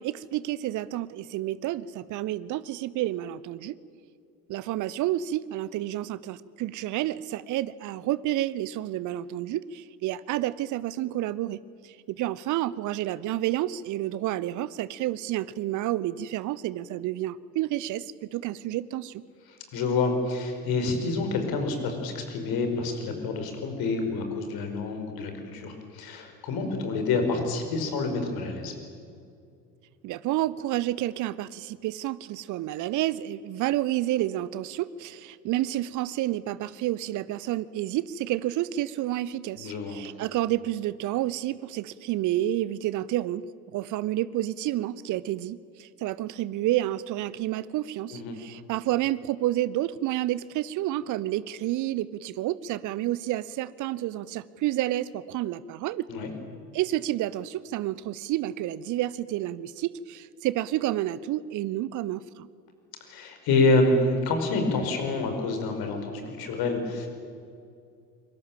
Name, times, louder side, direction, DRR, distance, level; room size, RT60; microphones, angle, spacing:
voice 1, 0.0-3.7 4.5-11.6 11.8-19.2 30.0-43.4 43.7-56.1 56.7-62.5, right 14 dB, 40° right, 19 dB, 0.9 m, -30 dB
voice 2, 19.7-28.7 39.6-40.0 48.1-48.4 56.1-56.3 63.1-67.1, left 3 dB, 45° left, 5 dB, 5.3 m, -27 dB
28.0 x 23.0 x 7.5 m, 2.4 s
figure-of-eight pair, 70°, 49 cm